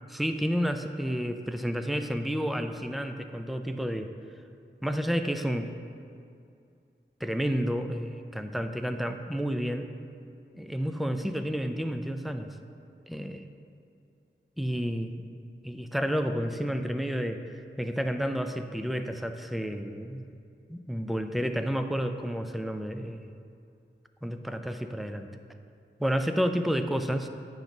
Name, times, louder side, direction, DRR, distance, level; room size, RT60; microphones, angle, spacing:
voice 1, 0.1-4.1 4.8-5.7 7.2-9.9 10.5-12.5 13.1-13.4 14.6-15.3 15.6-17.4 17.8-20.4 20.7-23.3 24.2-25.3 26.0-27.3, equal, ahead, 7 dB, 0.4 m, -30 dB
9.1 x 3.9 x 5.9 m, 2.5 s
wide cardioid pair, 75°, 20 cm